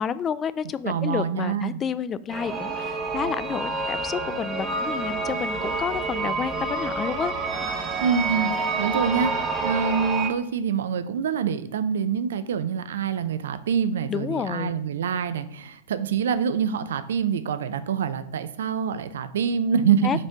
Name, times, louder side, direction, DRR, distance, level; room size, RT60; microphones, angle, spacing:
voice 1, 0.0-7.3 14.1-14.7 20.0-20.3, left 7 dB, 25° left, 16 dB, 0.3 m, -30 dB
voice 2, 0.8-1.8 8.0-20.2, right 7 dB, 60° right, 12 dB, 0.5 m, -26 dB
sound 1, 2.3-10.3, right 3 dB, 20° right, 1.0 m, -28 dB
6.0 x 4.3 x 4.6 m, 0.74 s
figure-of-eight pair, 90°, 0 cm